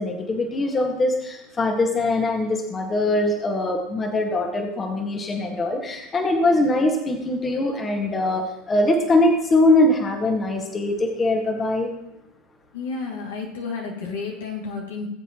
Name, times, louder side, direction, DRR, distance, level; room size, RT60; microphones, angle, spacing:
voice 1, 0.0-11.9, left 2 dB, 25° left, 3 dB, 1.8 m, -22 dB
voice 2, 12.7-15.1, left 4 dB, 80° left, -1 dB, 2.5 m, -31 dB
19.5 x 7.9 x 3.0 m, 0.92 s
hypercardioid pair, 80°, 0 cm